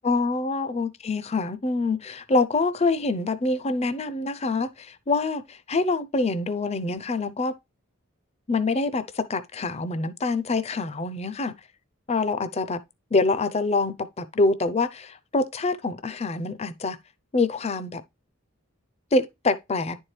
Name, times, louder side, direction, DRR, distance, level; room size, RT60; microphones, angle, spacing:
voice 1, 0.0-7.5 8.5-11.5 12.1-12.8 13.1-17.0 17.3-18.0 19.1-20.0, left 3 dB, 30° left, 0.5 m, -25 dB
10.5 x 4.5 x 3.2 m
head